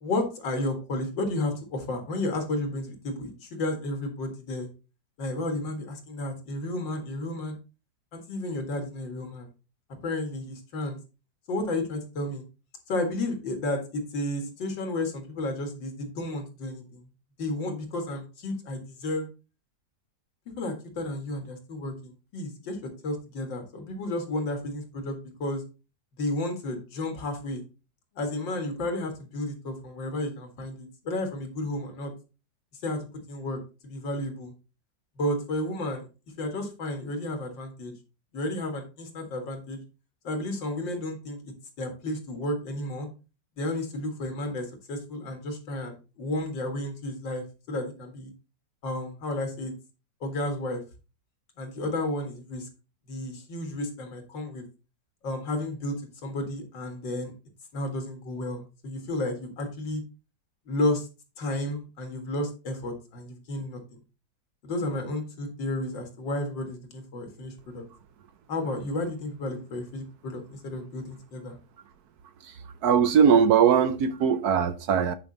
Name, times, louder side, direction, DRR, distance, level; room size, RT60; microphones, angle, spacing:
voice 1, 0.0-4.7 5.2-7.6 8.1-9.5 10.0-11.0 11.5-12.4 12.9-17.0 17.4-19.3 20.6-25.6 26.2-27.6 28.1-32.1 32.8-34.5 35.2-36.1 36.4-37.9 38.3-39.8 40.2-43.1 43.6-48.3 48.8-49.7 50.2-50.8 51.6-52.7 53.1-54.6 55.2-56.0 56.2-57.3 57.7-60.0 60.7-61.1 61.4-63.8 64.6-67.8 68.5-71.6, left 1 dB, 85° left, 2.6 m, -32 dB
voice 2, 72.4-75.1, right 7 dB, 65° right, 1.1 m, -21 dB
9.5 x 5.3 x 4.0 m
omnidirectional pair, 2.0 m